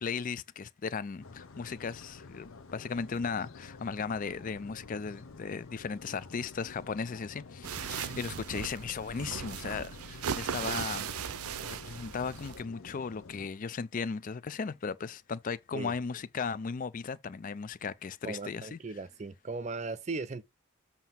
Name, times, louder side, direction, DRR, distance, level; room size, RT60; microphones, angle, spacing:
voice 1, 0.0-11.1 11.6-18.8, left 5 dB, 40° left, 0.4 m, -36 dB
sound 1, 1.2-13.5, left 3 dB, 65° left, 0.7 m, -50 dB
sound 2, 7.6-12.6, right 7 dB, 90° right, 0.5 m, -37 dB
voice 2, 18.2-20.4, right 3 dB, 30° right, 0.5 m, -37 dB
7.5 x 2.8 x 5.7 m
head